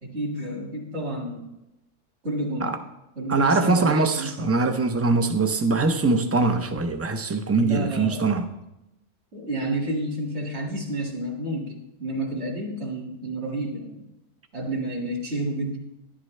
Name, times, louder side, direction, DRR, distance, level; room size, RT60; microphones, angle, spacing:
voice 1, 0.0-1.5 2.2-2.8 3.2-4.6 7.6-8.2 9.3-14.1 14.5-15.8, right 1 dB, 55° right, 2.2 m, -30 dB
voice 2, 3.3-8.5, right 3 dB, 25° right, 0.3 m, -22 dB
11.0 x 11.0 x 3.2 m
omnidirectional pair, 1.3 m